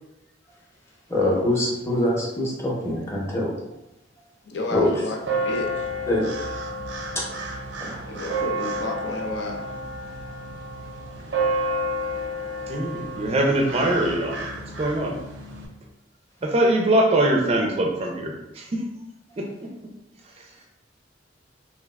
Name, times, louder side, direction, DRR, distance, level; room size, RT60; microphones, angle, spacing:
voice 1, 1.1-3.5 4.7-4.9 6.1-6.3 7.1-7.2 7.8-7.9, left 1 dB, 15° left, -5 dB, 0.7 m, -23 dB
voice 2, 4.5-5.2 5.4-5.9 8.1-9.7, left 2 dB, 70° left, 1 dB, 0.5 m, -31 dB
sound 1, 5.2-15.7, right 1 dB, 85° right, 0.5 m, -30 dB
voice 3, 12.7-14.4 14.8-15.2 16.4-18.8 19.4-19.7, right 1 dB, 35° right, 1 dB, 0.4 m, -22 dB
3.4 x 2.4 x 2.3 m, 0.89 s
head